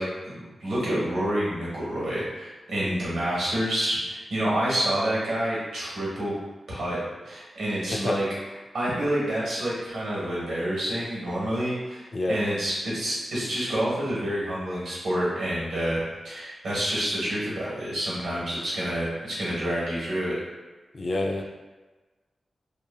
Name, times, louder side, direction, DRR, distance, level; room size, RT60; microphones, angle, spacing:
voice 1, 0.0-6.3 6.7-7.0 7.2-8.2 8.7-20.4, right 1 dB, 90° right, -7 dB, 1.1 m, -28 dB
voice 2, 7.9-8.2 12.1-12.4 20.9-21.4, left 2 dB, 45° left, 2 dB, 0.3 m, -28 dB
2.8 x 2.6 x 2.3 m, 1.2 s
wide cardioid pair, 90°, 0 cm